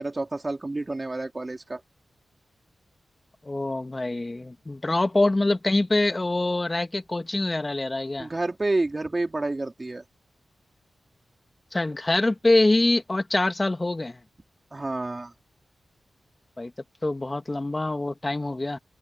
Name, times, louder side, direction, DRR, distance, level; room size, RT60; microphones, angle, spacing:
voice 1, 0.0-1.8 8.2-10.0 14.7-15.3, right 2 dB, 30° right, 3.4 m, -29 dB
voice 2, 3.4-8.3 11.7-14.2 16.6-16.7 17.0-18.8, left 2 dB, 25° left, 1.8 m, -24 dB
open air
cardioid pair, 75°, 0 cm